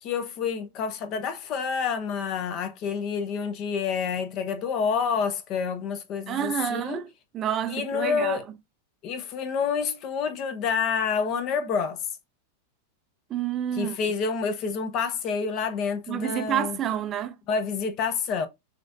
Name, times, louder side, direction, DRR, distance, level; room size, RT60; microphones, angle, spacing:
voice 1, 0.0-7.0 7.7-8.5 9.0-12.0 13.7-16.8 17.5-18.5, left 6 dB, 40° left, 0.8 m, -28 dB
voice 2, 6.3-7.1 7.3-8.4 13.3-14.0 16.1-17.3, right 10 dB, 30° right, 0.4 m, -28 dB
6.1 x 3.0 x 2.4 m
figure-of-eight pair, 90°, 0 cm